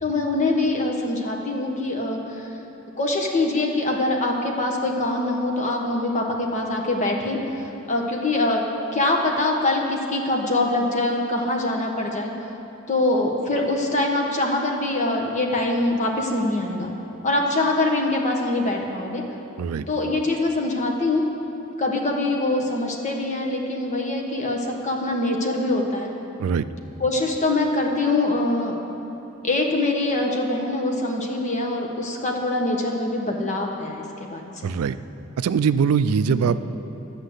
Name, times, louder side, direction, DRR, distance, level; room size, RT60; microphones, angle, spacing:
voice 1, 0.0-2.5 3.0-8.6 8.9-12.3 12.9-16.9 17.2-19.2 19.9-21.2 21.8-26.1 27.0-28.7 29.4-34.7 36.4-36.6, left 2 dB, 35° left, 1 dB, 1.3 m, -24 dB
voice 2, 34.6-35.0 35.4-36.7, right 6 dB, 80° right, 14 dB, 0.4 m, -22 dB
11.5 x 6.4 x 8.0 m, 3.0 s
head